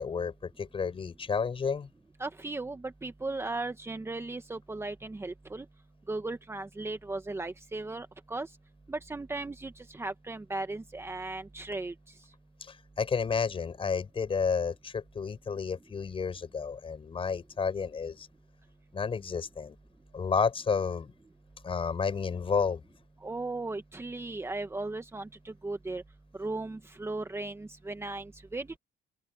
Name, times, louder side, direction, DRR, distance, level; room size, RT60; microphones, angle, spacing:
voice 1, 0.0-1.9 13.0-18.3 18.9-19.8 20.1-21.1 21.6-22.8, left 5 dB, 35° left, 4.8 m, -31 dB
voice 2, 2.2-5.7 6.1-8.5 8.9-11.9 23.2-26.0 26.4-28.8, right 2 dB, 15° right, 1.5 m, -37 dB
open air
cardioid pair, 110°, 17 cm